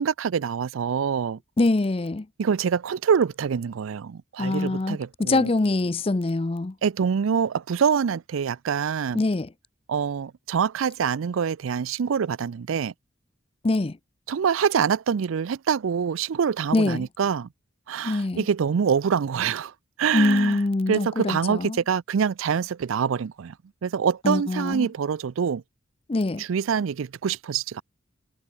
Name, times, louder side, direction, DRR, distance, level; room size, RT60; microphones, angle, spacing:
voice 1, 0.0-1.4 2.4-5.5 6.8-9.2 9.9-12.9 14.3-17.5 17.9-19.7 20.0-20.6 20.9-23.5 23.8-25.6 26.4-27.8, right 7 dB, 90° right, 0.4 m, -25 dB
voice 2, 1.6-2.3 4.4-6.8 9.1-9.5 13.6-14.0 16.7-17.1 18.0-18.5 20.1-21.8 24.2-24.9 26.1-26.4, left 2 dB, 30° left, 0.5 m, -24 dB
head